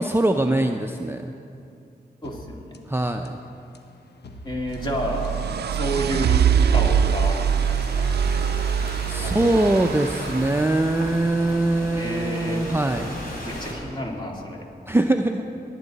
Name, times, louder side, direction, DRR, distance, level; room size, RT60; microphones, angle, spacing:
voice 1, 0.0-1.3 2.9-3.4 9.1-13.2 14.9-15.4, right 2 dB, 15° right, 4 dB, 0.5 m, -22 dB
sound 1, 2.2-11.2, left 2 dB, 75° left, 1.0 m, -45 dB
voice 2, 2.2-2.8 4.4-5.4 5.7-8.1 9.2-9.6 12.0-12.6 13.4-14.7, equal, 25° left, -1 dB, 2.4 m, -30 dB
sound 2, 4.6-10.7, right 8 dB, 75° right, 0.4 m, -23 dB
Thunderstorm / Rain, 4.7-13.7, left 1 dB, 60° left, 3.5 m, -37 dB
19.0 x 10.0 x 4.1 m, 2.6 s
cardioid pair, 60°, 17 cm